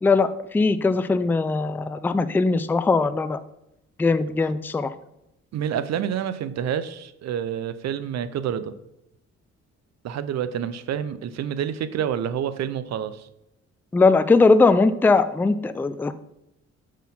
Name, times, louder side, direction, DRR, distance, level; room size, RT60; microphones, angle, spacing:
voice 1, 0.0-3.4 4.0-4.9 13.9-16.1, left 3 dB, 5° left, 12 dB, 0.3 m, -20 dB
voice 2, 5.5-8.7 10.0-13.3, right 9 dB, 60° right, 13 dB, 0.6 m, -28 dB
6.2 x 4.3 x 5.4 m, 0.83 s
cardioid pair, 90°, 30 cm